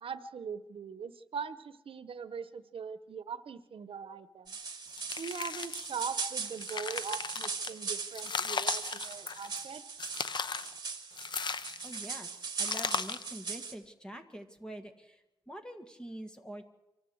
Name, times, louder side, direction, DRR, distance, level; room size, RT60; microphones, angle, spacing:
voice 1, 0.0-4.5 5.2-9.8, right 6 dB, 80° right, 12 dB, 0.9 m, -41 dB
sound 1, 4.5-13.7, right 5 dB, 50° right, 2.3 m, -40 dB
sound 2, 4.9-6.0 6.4-7.7 8.1-9.6 10.0-10.7 11.2-12.0 12.6-13.3, left 5 dB, 55° left, 0.7 m, -36 dB
voice 2, 11.8-12.3 12.6-16.6, right 1 dB, 10° left, 7 dB, 1.7 m, -45 dB
24.5 x 14.5 x 7.9 m, 0.99 s
wide cardioid pair, 140°, 9 cm